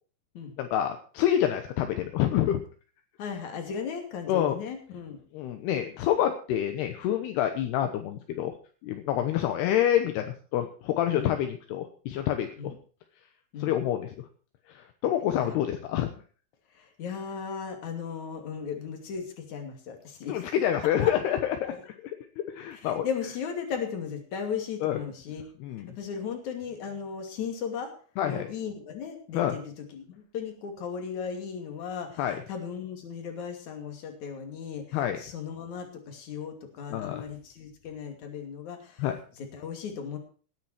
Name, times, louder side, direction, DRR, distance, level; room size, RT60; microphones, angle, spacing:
voice 1, 0.6-2.6 4.3-4.6 5.3-8.5 8.8-12.7 13.6-14.1 14.7-16.1 20.3-21.7 22.0-23.1 24.8-25.0 25.6-25.9 28.2-28.5 29.3-29.6 32.2-32.4 34.9-35.2 36.9-37.3 39.0-39.2, left 11 dB, 75° left, 7 dB, 2.5 m, -27 dB
voice 2, 3.2-5.2 9.1-9.4 11.1-11.3 12.6-12.8 13.5-13.7 15.3-15.6 16.7-20.5 20.8-21.1 21.6-21.8 22.7-25.4 25.9-27.9 28.2-39.1 39.4-40.2, left 6 dB, 45° left, 5 dB, 3.3 m, -36 dB
18.5 x 9.8 x 4.5 m, 0.41 s
omnidirectional pair, 5.9 m